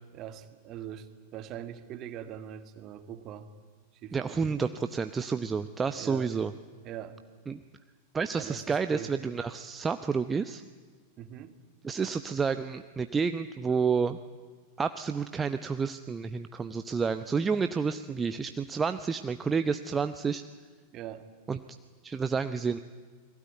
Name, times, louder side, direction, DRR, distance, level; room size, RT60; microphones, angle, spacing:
voice 1, 0.1-3.5 4.0-4.4 6.0-6.4 6.8-7.2 8.3-9.1 11.2-11.6 20.9-21.3, right 10 dB, 35° right, 10 dB, 2.0 m, -42 dB
voice 2, 4.1-6.5 7.5-7.6 8.1-10.6 11.8-14.2 14.8-20.4 21.5-21.6 22.0-22.8, right 5 dB, 15° right, 10 dB, 0.8 m, -30 dB
29.5 x 21.5 x 9.3 m, 1.5 s
figure-of-eight pair, 90°, 0 cm